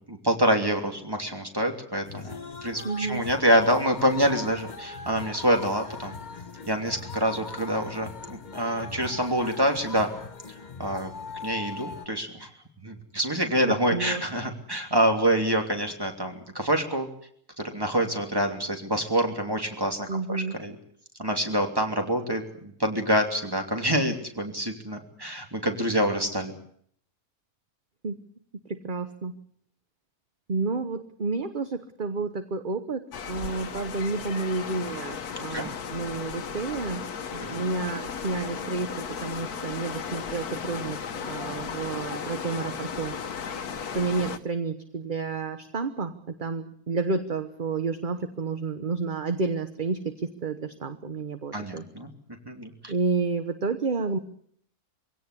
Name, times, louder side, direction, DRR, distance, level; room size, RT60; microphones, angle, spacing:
voice 1, 0.1-6.2 6.7-10.1 10.8-11.1 11.4-12.5 12.8-17.1 17.6-20.7 21.2-26.5 35.5-35.7 37.5-37.6 51.5-52.1 52.5-52.9, right 1 dB, 15° right, 4 dB, 2.9 m, -26 dB
sound 1, 2.0-12.1, left 5 dB, 35° left, 1.1 m, -40 dB
voice 2, 2.8-3.3 13.9-14.2 20.1-20.6 28.0-28.2 28.6-29.3 30.5-37.0 37.3-38.9 39.2-43.2 43.9-51.8 52.9-54.2, right 4 dB, 35° right, 9 dB, 1.2 m, -30 dB
sound 2, 33.1-44.4, left 6 dB, 85° left, 1.6 m, -35 dB
23.0 x 17.0 x 8.3 m, 0.64 s
omnidirectional pair, 1.6 m